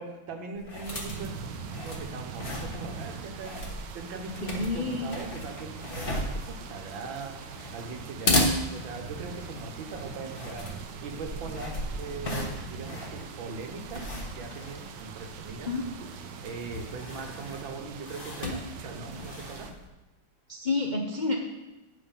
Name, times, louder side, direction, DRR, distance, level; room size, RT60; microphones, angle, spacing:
voice 1, 0.0-1.4 1.8-7.4 7.7-10.7 11.0-15.7 16.4-19.7, right 3 dB, 85° right, 4 dB, 1.9 m, -40 dB
sound 1, 0.6-19.9, left 1 dB, 30° left, 1.2 m, -35 dB
sound 2, 0.9-19.7, right 6 dB, 70° right, 1.3 m, -42 dB
voice 2, 4.4-5.1 15.6-15.8 20.5-21.3, left 3 dB, 50° left, 0 dB, 0.5 m, -29 dB
8.9 x 6.2 x 5.5 m, 1.0 s
omnidirectional pair, 2.1 m